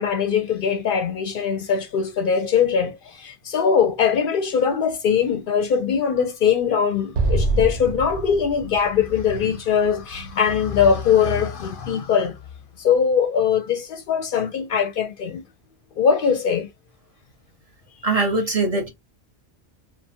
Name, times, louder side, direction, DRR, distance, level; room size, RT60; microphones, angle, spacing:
voice 1, 0.0-12.4 12.8-15.4 16.0-16.7, left 7 dB, 65° left, 0.7 m, -21 dB
Explosion, 7.1-10.4, right 2 dB, 85° right, 0.9 m, -26 dB
voice 2, 18.0-18.9, right 3 dB, 40° right, 0.6 m, -21 dB
2.5 x 2.0 x 2.7 m
omnidirectional pair, 1.0 m